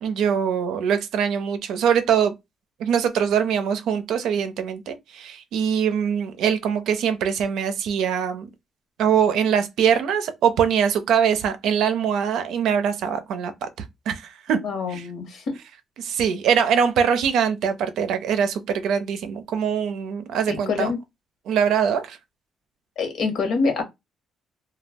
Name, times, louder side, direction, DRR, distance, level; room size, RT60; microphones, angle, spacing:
voice 1, 0.0-2.3 2.8-8.5 9.0-13.7 14.1-14.6 14.9-15.0 16.0-20.9 21.5-22.2, right 7 dB, 80° right, 0.5 m, -23 dB
voice 2, 14.6-15.6 20.5-21.0 23.0-23.8, left 4 dB, 70° left, 0.9 m, -25 dB
2.2 x 2.0 x 3.3 m
cardioid pair, 90°, 0 cm